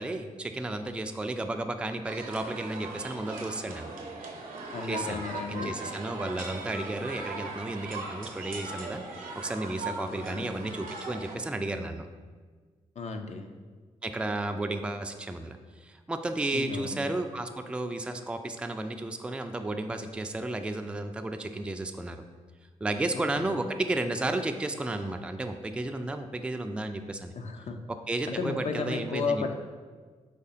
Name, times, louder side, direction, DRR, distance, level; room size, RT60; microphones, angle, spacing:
voice 1, 0.0-3.9 4.9-5.2 5.5-12.1 14.0-22.2 22.8-27.3 27.9-29.4, right 2 dB, 5° right, 6 dB, 0.3 m, -33 dB
sound 1, 2.0-11.4, right 3 dB, 65° right, 0.7 m, -39 dB
voice 2, 4.7-6.0 10.3-10.5 13.0-13.5 16.5-17.1 23.1-23.6 27.3-27.8 28.3-29.6, left 4 dB, 50° left, 6 dB, 0.5 m, -34 dB
5.0 x 3.2 x 2.8 m, 1.5 s
hypercardioid pair, 40°, 15 cm